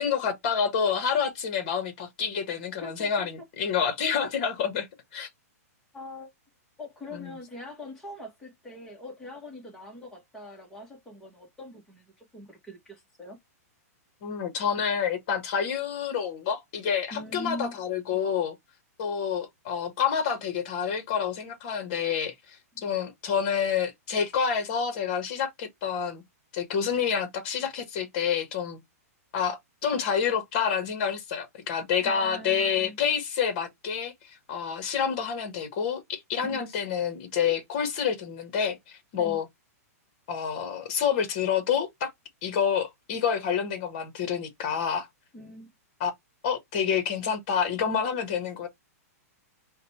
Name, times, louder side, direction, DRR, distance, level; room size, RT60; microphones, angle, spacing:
voice 1, 0.0-4.9 5.1-5.3 7.1-7.4 14.2-18.5 19.0-22.3 22.8-26.2 26.5-28.8 29.3-34.1 34.5-38.8 39.1-39.5 40.3-42.1 42.4-45.1 46.0-46.1 46.4-48.7, left 7 dB, 30° left, 1.2 m, -28 dB
voice 2, 2.8-3.5 5.9-6.3 6.8-13.4 17.1-17.8 22.7-22.8 32.0-33.0 36.4-36.6 39.2-39.4 45.3-45.7, left 1 dB, 5° left, 1.1 m, -42 dB
5.1 x 2.2 x 4.1 m
hypercardioid pair, 180°, 9 cm